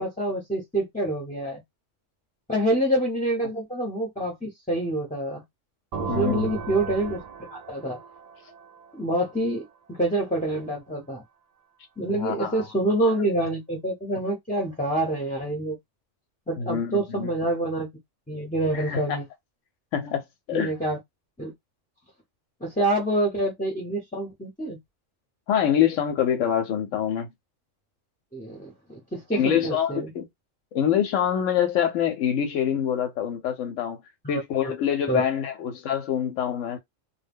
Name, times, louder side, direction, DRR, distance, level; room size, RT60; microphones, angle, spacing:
voice 1, 0.0-1.6 2.5-5.4 6.0-8.0 9.0-9.6 9.9-11.2 12.0-15.8 16.5-17.9 18.3-19.2 20.5-21.0 21.4-21.5 22.6-24.8 28.3-30.1 34.2-34.4 35.1-35.2, right 1 dB, 10° left, 0.6 m, -27 dB
sound 1, 5.9-9.6, right 5 dB, 70° right, 0.3 m, -36 dB
voice 2, 6.1-6.5 12.1-12.7 16.6-17.3 18.7-19.2 19.9-20.2 20.5-20.7 25.5-27.3 29.3-30.3 30.7-34.0 34.3-36.8, left 9 dB, 90° left, 0.9 m, -25 dB
2.2 x 2.1 x 3.4 m
omnidirectional pair, 1.3 m